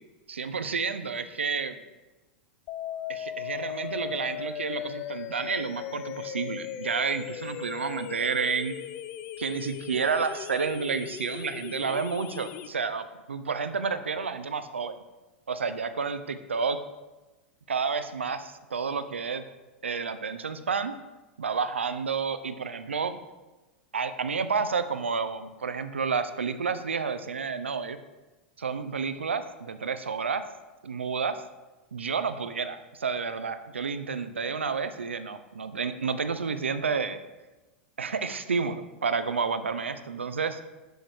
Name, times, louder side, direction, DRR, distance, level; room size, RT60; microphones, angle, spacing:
voice 1, 0.3-1.8 3.1-8.8 9.4-15.0 15.5-16.8 17.7-19.4 19.8-20.9 21.4-23.2 23.9-28.0 28.6-30.4 30.8-31.4 31.9-37.2 38.0-40.6, right 5 dB, 80° right, 11 dB, 0.4 m, -30 dB
sound 1, 2.7-12.7, left 10 dB, 40° left, 0.3 m, -38 dB
6.2 x 6.2 x 3.3 m, 1.1 s
figure-of-eight pair, 90°, 6 cm